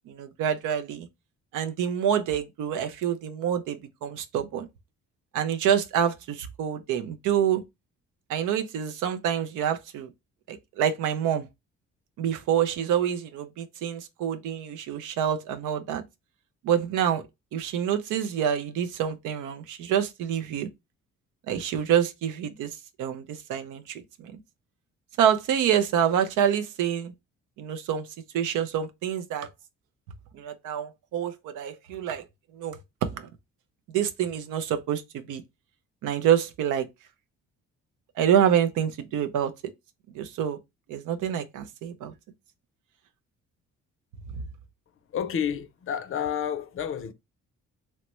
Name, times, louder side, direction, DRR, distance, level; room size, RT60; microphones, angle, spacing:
voice 1, 0.1-1.1 1.5-4.7 5.3-7.6 8.3-10.1 10.5-11.5 12.2-16.0 16.6-17.2 17.5-20.7 21.5-22.7 23.0-24.3 25.2-27.1 27.6-28.1 28.3-29.5 30.3-32.2 32.5-33.3 33.9-35.4 36.0-36.9 38.2-39.5 40.1-40.6 40.9-42.1, right 9 dB, 85° right, 0.6 m, -27 dB
voice 2, 45.1-47.1, left 8 dB, 45° left, 0.5 m, -30 dB
3.0 x 2.1 x 3.0 m
cardioid pair, 90°, 30 cm